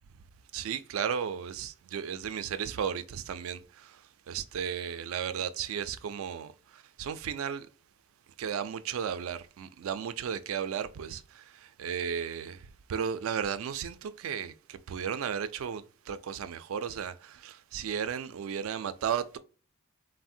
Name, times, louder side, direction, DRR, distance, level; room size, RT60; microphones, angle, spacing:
voice 1, 0.5-7.7 8.4-19.4, right 7 dB, 70° right, 0.3 m, -35 dB
3.3 x 2.1 x 2.6 m
head